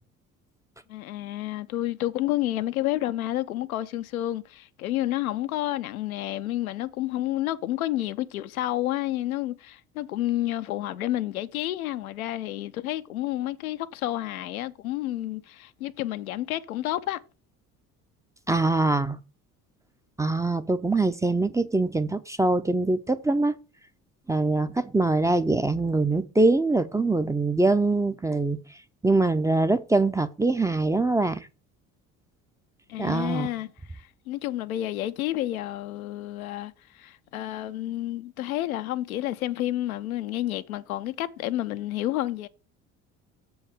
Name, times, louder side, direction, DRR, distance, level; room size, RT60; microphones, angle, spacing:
voice 1, 0.9-17.2 32.9-42.5, left 14 dB, 85° left, 0.6 m, -30 dB
voice 2, 18.5-19.2 20.2-23.6 24.3-28.6 29.0-31.4 33.0-33.5, right 2 dB, 10° right, 0.5 m, -23 dB
7.1 x 4.7 x 6.5 m
hypercardioid pair, 60°, 41 cm